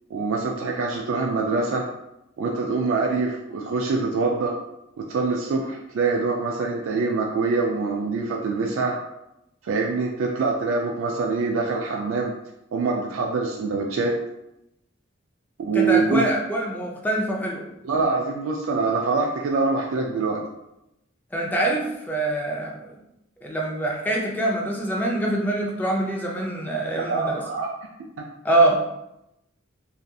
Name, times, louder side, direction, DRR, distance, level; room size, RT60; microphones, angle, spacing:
voice 1, 0.1-1.9 2.4-4.5 5.0-8.9 9.6-12.3 12.7-14.1 15.6-16.2 17.8-20.4 27.1-27.7, right 4 dB, 75° right, 0 dB, 0.3 m, -24 dB
voice 2, 15.7-17.6 21.3-22.9 23.4-27.4 28.4-28.8, right 1 dB, 10° left, -1 dB, 0.4 m, -24 dB
2.7 x 2.5 x 2.3 m, 0.86 s
head